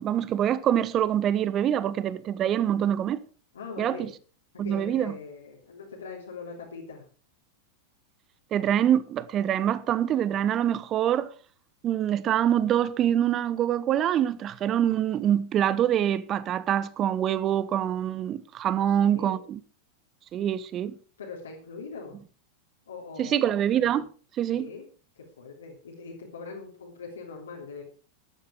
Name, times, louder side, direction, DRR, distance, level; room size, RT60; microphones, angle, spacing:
voice 1, 0.0-3.2 3.8-4.1 4.6-5.1 8.5-11.3 11.8-19.6 20.3-21.0 23.2-24.1 24.4-24.7, right 10 dB, 30° right, 1.0 m, -25 dB
voice 2, 3.5-4.1 4.5-7.1 18.7-19.4 21.2-22.2 22.9-23.4 24.5-24.8 25.1-27.8, left 4 dB, 70° left, 3.3 m, -41 dB
14.0 x 11.5 x 4.8 m
figure-of-eight pair, 90°, 0 cm